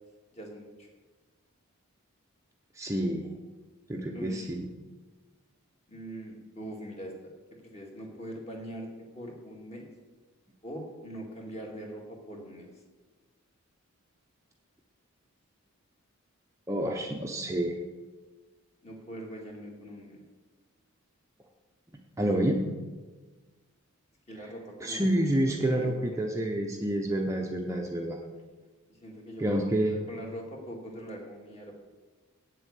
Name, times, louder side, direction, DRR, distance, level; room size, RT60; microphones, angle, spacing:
voice 1, 0.3-0.9 4.1-4.5 5.9-7.1 7.5-8.9 9.1-9.9 10.6-12.7 18.8-20.2 24.3-26.2 28.9-29.4 29.8-31.7, equal, 30° left, 0 dB, 2.1 m, -42 dB
voice 2, 2.8-3.3 3.9-4.6 16.7-17.7 22.2-22.6 24.8-28.2 29.4-30.0, right 1 dB, 15° right, 1 dB, 0.7 m, -28 dB
8.3 x 7.7 x 8.3 m, 1.3 s
head